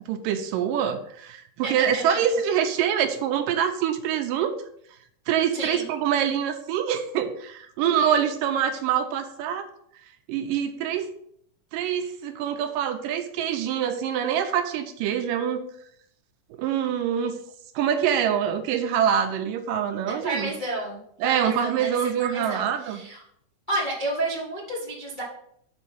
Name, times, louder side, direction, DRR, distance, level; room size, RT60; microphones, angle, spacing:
voice 1, 0.1-4.6 5.3-9.7 10.3-11.1 11.7-15.6 16.5-17.4 17.8-20.5 21.2-23.0, right 8 dB, 80° right, 7 dB, 2.2 m, -25 dB
voice 2, 1.6-2.2 5.5-5.8 7.8-8.2 20.1-23.2 23.7-25.2, right 2 dB, 45° left, -5 dB, 0.6 m, -31 dB
6.6 x 5.3 x 5.5 m, 0.67 s
omnidirectional pair, 4.1 m